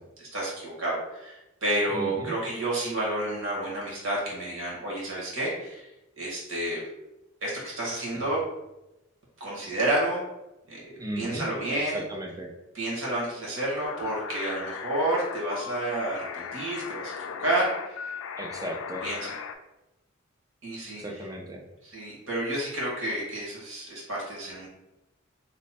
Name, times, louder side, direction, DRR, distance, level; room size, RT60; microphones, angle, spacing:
voice 1, 0.2-5.9 6.2-6.8 7.4-8.4 9.4-10.2 10.7-12.0 12.7-17.1 17.4-17.7 19.0-19.3 20.6-21.3 21.8-24.7, right 1 dB, 75° right, -4 dB, 1.5 m, -30 dB
voice 2, 1.9-2.3 8.2-8.3 11.0-12.5 18.4-19.0 21.0-21.7, right 1 dB, 15° right, 1 dB, 0.5 m, -36 dB
sound 1, 13.8-19.5, left 6 dB, 70° left, 0.3 m, -38 dB
3.1 x 2.1 x 4.1 m, 0.94 s
head